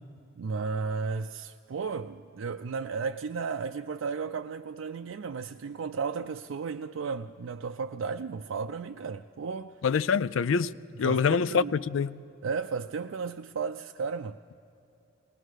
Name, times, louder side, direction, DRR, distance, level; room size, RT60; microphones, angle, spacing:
voice 1, 0.4-9.8 11.0-11.7 12.4-14.4, right 5 dB, 85° right, 0.4 m, -34 dB
voice 2, 9.8-10.7 11.0-12.2, left 6 dB, 80° left, 0.4 m, -25 dB
20.5 x 19.5 x 6.4 m
head